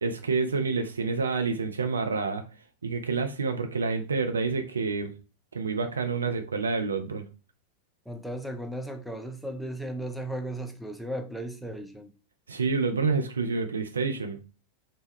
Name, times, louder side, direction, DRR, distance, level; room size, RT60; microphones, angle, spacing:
voice 1, 0.0-2.4 2.8-5.1 5.5-7.3 12.5-14.4, right 4 dB, 75° right, 0.3 m, -28 dB
voice 2, 8.1-12.1, right 1 dB, ahead, 0.4 m, -36 dB
2.1 x 2.1 x 3.3 m
figure-of-eight pair, 90°, 0 cm